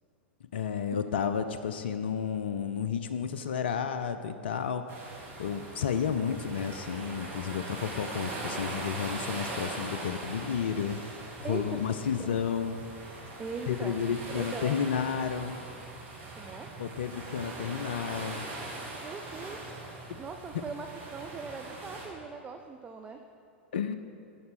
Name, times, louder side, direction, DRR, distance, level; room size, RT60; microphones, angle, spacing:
voice 1, 0.5-4.8 5.4-11.0 11.4-12.9 13.7-15.6 16.8-18.5 23.7-24.0, left 7 dB, 60° left, 10 dB, 0.4 m, -31 dB
sound 1, 4.9-22.1, right 2 dB, 35° right, 2.2 m, -41 dB
voice 2, 13.4-14.0 14.3-14.8 16.3-16.7 19.0-19.8 20.2-23.2, right 5 dB, 15° right, 4 dB, 0.4 m, -40 dB
9.4 x 4.1 x 5.9 m, 2.5 s
figure-of-eight pair, 95°, 6 cm